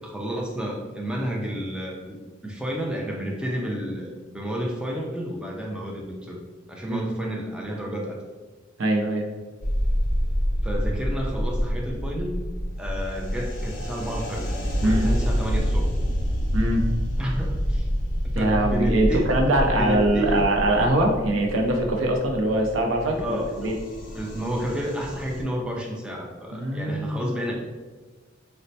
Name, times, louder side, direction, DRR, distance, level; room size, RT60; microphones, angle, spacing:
voice 1, 0.0-8.2 10.6-12.4 12.8-14.5 14.8-15.9 17.2-17.9 18.3-19.3 19.8-20.6 23.2-23.7 24.1-27.5, equal, 5° right, -2 dB, 0.4 m, -31 dB
voice 2, 8.8-9.3 14.8-15.1 16.5-16.8 18.3-23.7 26.5-27.4, right 1 dB, 75° right, 2 dB, 0.5 m, -23 dB
sound 1, 9.6-25.4, equal, 45° left, 0.6 m, -27 dB
4.1 x 2.1 x 2.7 m, 1.3 s
head